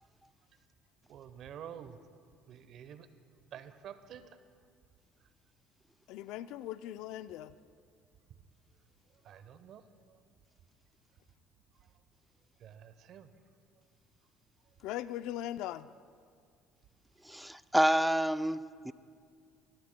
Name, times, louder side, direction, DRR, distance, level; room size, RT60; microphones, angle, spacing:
voice 1, 1.1-2.0 2.5-3.1 3.5-4.3 9.2-9.8 12.6-13.3, right 9 dB, 60° right, 0.8 m, -48 dB
voice 2, 6.1-7.5 14.8-15.9, left 13 dB, 75° left, 0.4 m, -39 dB
voice 3, 17.3-18.9, right 1 dB, 5° right, 0.4 m, -28 dB
21.0 x 20.0 x 2.2 m
supercardioid pair, 90°, 0 cm